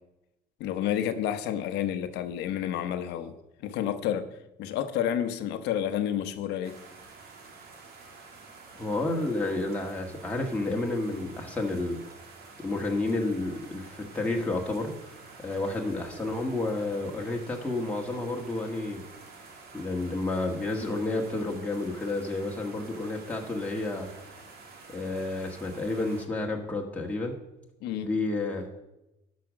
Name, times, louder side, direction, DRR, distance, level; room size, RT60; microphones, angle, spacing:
voice 1, 0.6-3.4 3.6-4.3 4.6-6.8 27.8-28.1, left 10 dB, 90° left, 1.0 m, -30 dB
sound 1, 6.6-26.2, right 4 dB, 65° right, 2.1 m, -49 dB
voice 2, 8.7-12.0 12.6-14.9 15.4-19.0 19.7-24.1 24.9-27.3 28.0-28.7, left 2 dB, 10° left, 1.7 m, -30 dB
12.0 x 5.2 x 6.3 m
cardioid pair, 110°, 17 cm